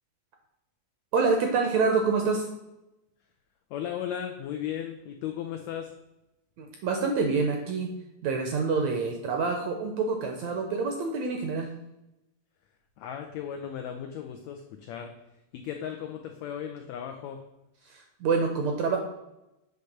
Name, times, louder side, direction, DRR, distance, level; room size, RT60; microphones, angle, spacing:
voice 1, 1.1-2.5 6.6-7.9 8.2-11.7 17.8-19.0, right 4 dB, 75° right, 3 dB, 1.6 m, -27 dB
voice 2, 3.7-5.9 13.0-15.1 15.5-17.4, left 9 dB, 90° left, 4 dB, 1.5 m, -36 dB
8.2 x 3.3 x 6.4 m, 0.93 s
omnidirectional pair, 3.9 m